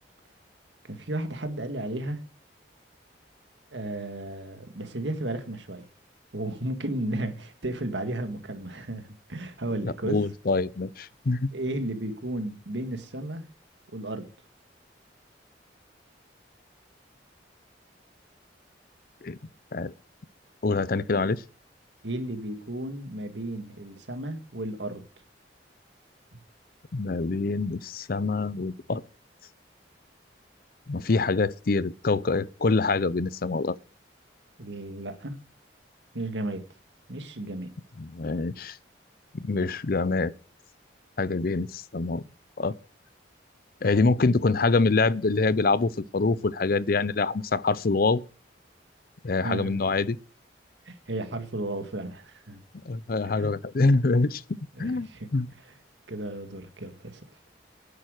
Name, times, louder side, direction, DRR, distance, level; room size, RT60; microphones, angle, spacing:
voice 1, 0.9-2.2 3.7-5.9 6.3-10.3 11.5-13.4 13.9-14.3 22.0-25.0 34.6-35.4 36.1-36.7 37.1-37.7 49.4-49.8 50.9-52.6 53.2-53.5 54.8-55.3 56.1-57.2, right 1 dB, 75° right, 1.9 m, -34 dB
voice 2, 9.8-11.5 19.2-19.4 19.7-19.9 20.6-21.4 26.9-29.0 30.9-33.8 38.0-38.8 39.3-40.3 41.2-42.2 42.6-42.7 43.8-48.2 49.2-50.2 52.9-54.4 54.8-55.5, left 3 dB, 50° left, 0.6 m, -25 dB
10.5 x 8.6 x 6.5 m
head